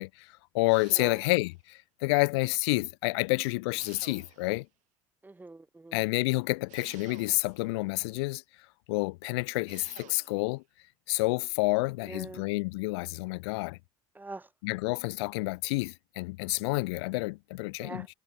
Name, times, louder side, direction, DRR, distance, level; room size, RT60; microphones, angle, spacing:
voice 1, 0.0-4.7 5.9-8.4 8.9-10.6 11.1-13.8 14.6-18.1, left 24 dB, 75° left, 0.5 m, -29 dB
sound 1, 0.7-1.6 3.7-4.7 6.7-7.7 9.7-10.5, right 17 dB, 60° right, 7.1 m, -53 dB
voice 2, 1.0-1.3 5.2-6.0 12.0-12.5 14.1-14.5 17.8-18.1, right 2 dB, 15° right, 1.5 m, -43 dB
hypercardioid pair, 70°, 14 cm